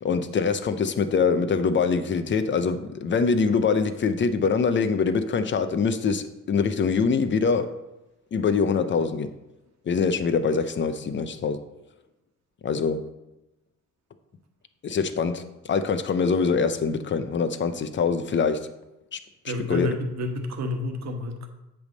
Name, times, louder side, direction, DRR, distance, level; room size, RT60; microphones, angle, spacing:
voice 1, 0.0-7.7 8.3-9.3 9.9-11.6 12.6-13.0 14.8-18.7 19.1-19.2 19.7-19.9, left 5 dB, 40° left, 10 dB, 0.7 m, -24 dB
voice 2, 19.4-21.5, left 1 dB, 60° right, 5 dB, 1.2 m, -30 dB
8.0 x 3.6 x 6.4 m, 0.95 s
cardioid pair, 90°, 30 cm